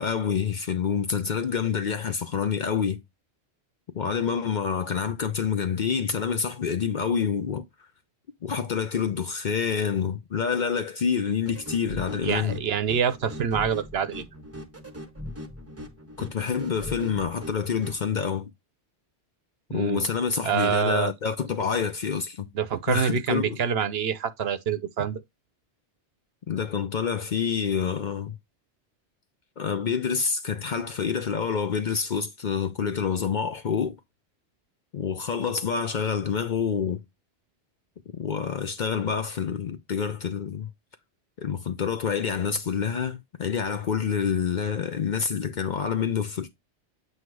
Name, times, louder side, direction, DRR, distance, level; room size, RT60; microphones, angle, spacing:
voice 1, 0.0-3.0 3.9-7.6 8.4-12.6 16.2-18.5 19.7-22.5 22.9-23.6 26.5-28.4 29.6-34.0 34.9-37.0 38.1-40.7 41.4-46.5, left 6 dB, 50° left, 0.6 m, -27 dB
sound 1, 11.5-18.0, left 1 dB, 15° right, 0.8 m, -40 dB
voice 2, 12.2-14.3 19.7-20.0 20.4-21.1 22.5-25.2, right 8 dB, 65° right, 0.9 m, -26 dB
7.9 x 2.8 x 4.6 m
omnidirectional pair, 1.2 m